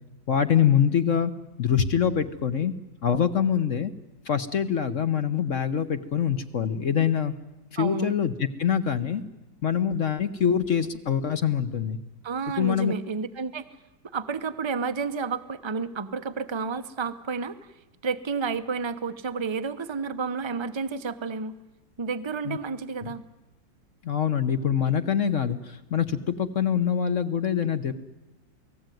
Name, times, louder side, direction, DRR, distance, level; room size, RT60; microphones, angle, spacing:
voice 1, 0.3-1.3 1.6-2.7 3.0-3.9 4.2-7.3 7.7-8.3 8.6-9.2 9.6-12.0 12.6-12.9 22.4-22.6 24.0-27.9, left 8 dB, 45° left, 11 dB, 1.2 m, -24 dB
voice 2, 7.8-8.1 12.2-13.7 14.1-17.6 18.0-21.6 22.0-23.2, right 5 dB, 20° right, 11 dB, 0.7 m, -30 dB
28.5 x 19.0 x 9.3 m, 1.0 s
omnidirectional pair, 2.1 m